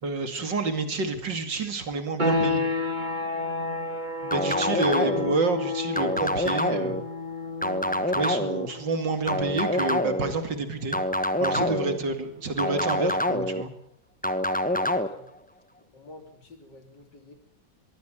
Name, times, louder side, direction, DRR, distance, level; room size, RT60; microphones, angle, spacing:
voice 1, 0.0-2.7 4.2-7.0 8.1-11.0 11.4-13.7, right 3 dB, 70° right, 8 dB, 3.0 m, -29 dB
sound 1, 2.2-12.7, left 3 dB, 25° right, 2.5 m, -32 dB
sound 2, 4.3-5.4 6.0-7.0 7.6-8.7 9.3-10.3 10.9-12.0 12.6-13.6 14.2-15.1, left 1 dB, 5° left, 0.9 m, -26 dB
voice 2, 14.8-15.4 15.9-17.4, left 2 dB, 65° left, 6 dB, 3.5 m, -49 dB
23.0 x 15.5 x 9.1 m, 0.71 s
omnidirectional pair, 2.0 m